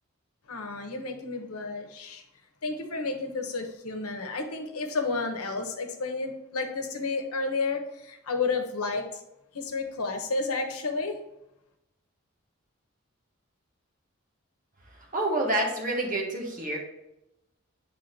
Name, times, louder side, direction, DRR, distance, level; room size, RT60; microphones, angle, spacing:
voice 1, 0.5-2.2 2.6-9.2 9.5-11.1, left 3 dB, 90° left, 5 dB, 1.0 m, -31 dB
voice 2, 15.1-16.8, right 1 dB, 35° right, -1 dB, 1.5 m, -28 dB
8.0 x 3.7 x 4.1 m, 0.88 s
head